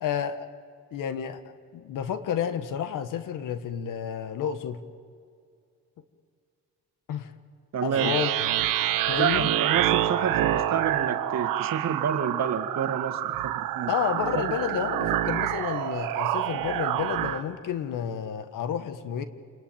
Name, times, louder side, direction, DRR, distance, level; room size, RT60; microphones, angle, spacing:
voice 1, 0.0-0.5 0.9-1.4 1.7-4.8 7.1-7.3 7.8-8.3 9.1-9.5 13.9-19.2, left 8 dB, 75° left, 10 dB, 1.6 m, -30 dB
voice 2, 7.7-8.2 9.2-13.9 14.3-14.6, right 7 dB, 55° right, 6 dB, 2.1 m, -29 dB
sound 1, 7.9-17.4, right 13 dB, 85° right, 1.2 m, -27 dB
28.5 x 20.5 x 8.9 m, 2.3 s
cardioid pair, 85°, 32 cm